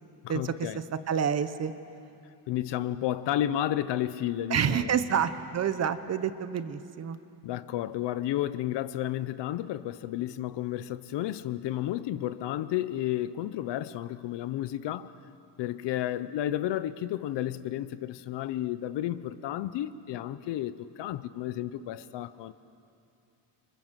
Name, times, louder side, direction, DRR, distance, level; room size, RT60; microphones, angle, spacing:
voice 1, 0.2-0.8 2.5-5.0 7.4-15.1 15.6-22.5, left 12 dB, 70° left, 1.0 m, -32 dB
voice 2, 1.1-1.7 4.5-7.2, right 8 dB, 35° right, 1.0 m, -28 dB
29.5 x 26.0 x 7.6 m
cardioid pair, 175°, 44 cm